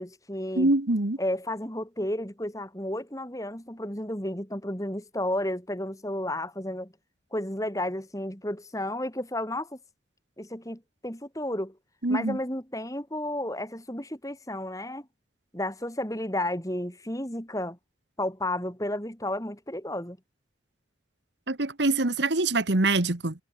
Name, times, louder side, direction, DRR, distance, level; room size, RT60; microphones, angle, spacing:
voice 1, 0.0-0.7 1.2-6.9 7.3-9.8 10.4-11.8 12.1-15.1 15.5-17.8 18.2-20.2, left 1 dB, 15° left, 4.2 m, -32 dB
voice 2, 0.6-1.2 12.0-12.4 21.5-23.3, right 2 dB, 65° right, 1.6 m, -24 dB
head